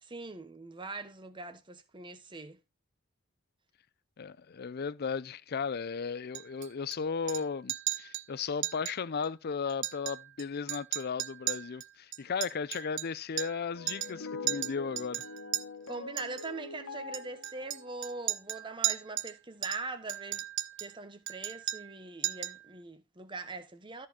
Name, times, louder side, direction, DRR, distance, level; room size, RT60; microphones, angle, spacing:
voice 1, 0.0-2.6 15.9-20.4 20.8-24.1, right 3 dB, 25° right, 1.1 m, -42 dB
voice 2, 4.2-15.2, left 5 dB, 45° left, 0.5 m, -35 dB
Chink clink, 6.3-7.0 7.3-7.4 7.7-8.3 8.6-9.0 9.2-9.3 9.7-10.4 10.7-13.6 13.9-14.2 14.5-15.6 16.2-16.5 17.1-19.3 19.6-20.9 21.3-22.0 22.2-22.6, right 14 dB, 60° right, 0.6 m, -35 dB
sound 1, 13.7-18.7, left 4 dB, 75° left, 1.1 m, -44 dB
13.5 x 4.7 x 4.3 m
head